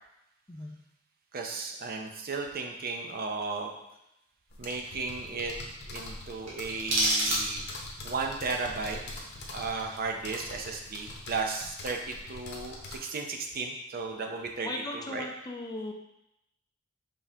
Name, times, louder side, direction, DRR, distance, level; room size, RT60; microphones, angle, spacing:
voice 1, 1.3-3.8 4.6-5.6 5.9-7.6 8.0-9.0 9.5-14.7 14.9-15.2, right 4 dB, 45° right, 3 dB, 0.5 m, -35 dB
sound 1, 4.5-13.0, left 2 dB, 55° left, 0.8 m, -43 dB
sound 2, 6.5-7.9, right 1 dB, 65° right, 1.5 m, -28 dB
voice 2, 14.6-15.9, left 2 dB, 20° left, 1 dB, 0.5 m, -37 dB
5.2 x 3.5 x 2.8 m, 0.86 s
head